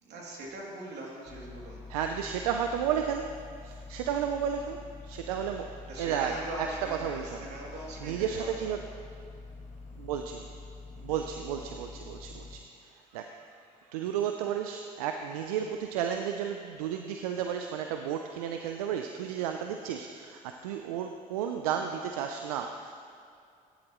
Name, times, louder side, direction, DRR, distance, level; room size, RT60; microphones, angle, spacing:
voice 1, 0.0-1.8 5.9-8.8 10.9-11.0 12.3-12.4, right 2 dB, 65° right, -3 dB, 2.8 m, -41 dB
sound 1, 1.3-12.6, left 3 dB, 40° left, 1.5 m, -46 dB
voice 2, 1.9-7.5 8.0-8.8 10.0-10.5 11.0-22.9, right 8 dB, 90° right, 5 dB, 0.5 m, -33 dB
16.5 x 10.5 x 3.1 m, 2.4 s
hypercardioid pair, 55°, 18 cm